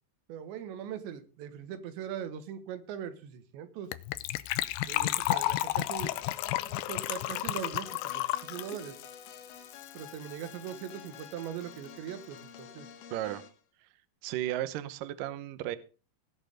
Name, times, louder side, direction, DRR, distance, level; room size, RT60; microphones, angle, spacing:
voice 1, 0.3-3.9 4.9-6.2 6.7-9.0 9.9-12.9, right 9 dB, 90° right, 3.6 m, -41 dB
Gurgling / Trickle dribble / Fill (with liquid), 3.9-10.2 10.4-10.5 10.7-10.9 11.2-11.3, left 15 dB, 90° left, 3.0 m, -32 dB
sound 1, 6.0-13.6, left 8 dB, 65° left, 3.1 m, -50 dB
voice 2, 13.1-13.4 14.2-15.8, right 13 dB, 75° right, 2.1 m, -34 dB
18.5 x 6.4 x 5.1 m
omnidirectional pair, 5.0 m